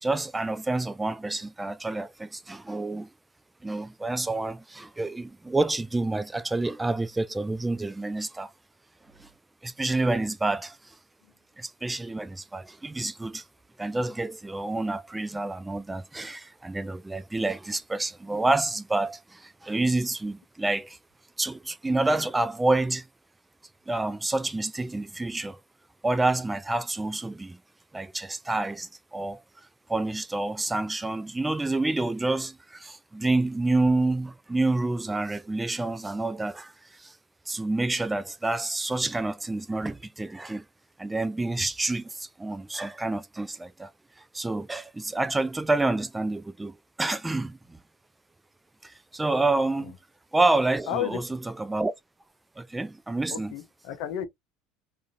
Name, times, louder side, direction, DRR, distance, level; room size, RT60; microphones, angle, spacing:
voice 1, 0.0-3.1 3.6-8.5 9.2-9.3 9.6-11.0 11.6-13.4 13.8-21.0 21.4-23.1 23.9-25.6 26.0-27.6 27.9-29.4 29.9-37.2 37.5-40.6 41.0-43.9 44.2-47.8 48.8-49.9 50.3-51.2 51.6-51.9 52.6-53.5, right 2 dB, 10° right, 0.3 m, -28 dB
voice 2, 50.9-51.2 53.3-54.3, left 10 dB, 55° left, 0.7 m, -32 dB
3.6 x 2.5 x 2.7 m
figure-of-eight pair, 70°, 0 cm